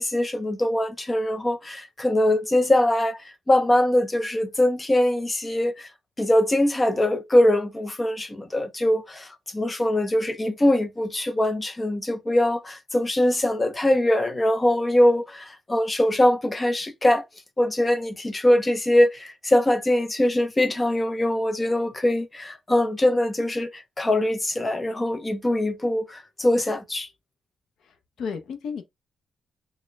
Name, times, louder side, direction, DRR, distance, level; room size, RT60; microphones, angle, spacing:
voice 1, 0.0-3.2 3.5-5.9 6.2-9.3 9.5-17.2 17.6-27.1, left 1 dB, 20° left, 0.5 m, -22 dB
voice 2, 27.9-28.8, left 6 dB, 70° left, 0.6 m, -33 dB
4.2 x 2.1 x 3.2 m
cardioid pair, 140°, 0 cm